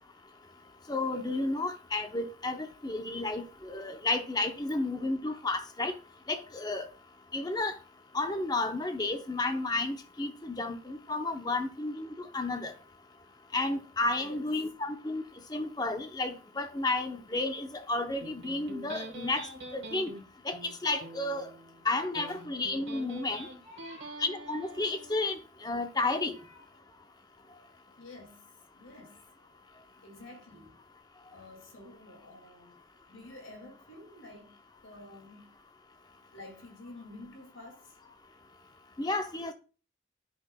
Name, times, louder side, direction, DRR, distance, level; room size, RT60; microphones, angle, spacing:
voice 1, 0.9-5.9 6.3-6.9 7.3-7.7 8.1-12.1 12.3-12.7 13.5-15.2 15.5-19.4 19.7-20.1 20.5-20.6 20.8-21.4 21.9-23.5 24.2-25.4 25.6-26.3 39.0-39.5, left 2 dB, 20° left, 0.6 m, -32 dB
Electric guitar, 18.2-25.2, right 2 dB, 65° right, 1.4 m, -46 dB
voice 2, 23.4-24.2 26.4-26.7 27.6-27.7 28.0-28.5 28.8-29.2 30.0-30.8 31.3-32.7 33.1-34.6 34.8-35.5 36.3-37.9, left 2 dB, 85° left, 2.2 m, -50 dB
9.1 x 6.0 x 2.2 m
head